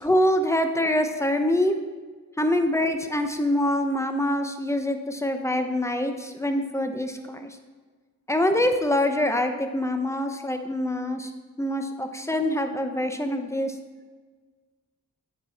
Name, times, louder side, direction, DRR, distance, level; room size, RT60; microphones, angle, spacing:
voice 1, 0.0-1.8 2.4-7.6 8.3-11.3 11.6-13.7, left 1 dB, 10° left, 6 dB, 0.7 m, -25 dB
9.2 x 4.6 x 4.1 m, 1.4 s
cardioid pair, 50°, 34 cm